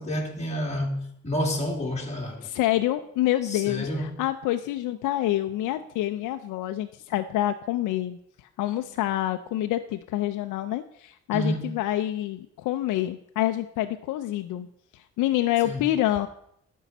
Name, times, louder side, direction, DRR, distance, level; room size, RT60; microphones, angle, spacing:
voice 1, 0.0-2.5 3.4-4.2 11.3-11.7 15.4-15.8, equal, 20° left, 2.5 m, -30 dB
voice 2, 2.4-8.2 8.6-14.7 14.9-16.3, left 14 dB, 90° left, 0.6 m, -27 dB
11.0 x 5.5 x 7.1 m
cardioid pair, 90°, 30 cm